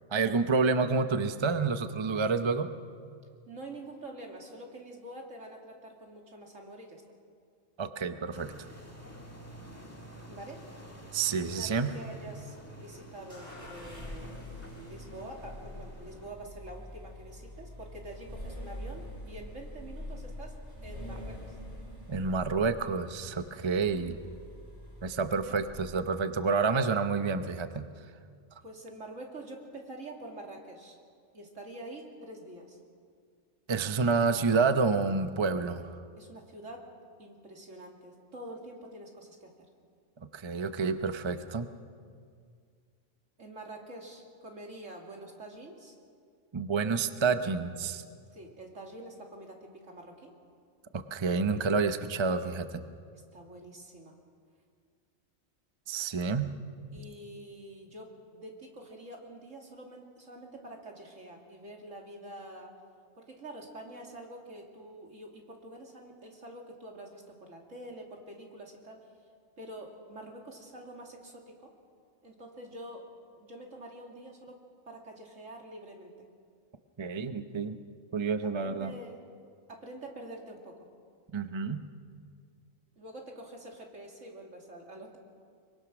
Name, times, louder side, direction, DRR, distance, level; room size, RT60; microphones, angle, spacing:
voice 1, 0.1-2.7 7.8-8.5 11.1-11.9 22.1-24.2 25.0-27.9 33.7-36.0 40.2-41.7 46.5-48.0 50.9-52.8 55.9-56.5 77.0-77.8 78.1-78.9 81.3-81.8, right 4 dB, 30° right, 9 dB, 0.6 m, -29 dB
voice 2, 3.5-7.0 10.3-10.6 11.5-11.7 11.9-20.5 20.8-21.6 28.6-31.0 31.3-32.8 36.2-36.9 37.2-39.5 43.4-46.0 48.3-50.3 53.1-54.2 56.9-62.7 63.2-69.0 69.6-71.7 72.2-73.1 73.4-74.6 74.9-76.1 78.6-79.2 79.7-80.9 83.0-85.2, right 1 dB, 70° right, 0 dB, 3.0 m, -46 dB
sound 1, 8.3-16.3, right 1 dB, 10° left, 2.0 m, -49 dB
sound 2, 13.3-26.1, left 1 dB, 10° right, 8.1 m, -45 dB
24.0 x 23.0 x 6.1 m, 2.2 s
omnidirectional pair, 1.4 m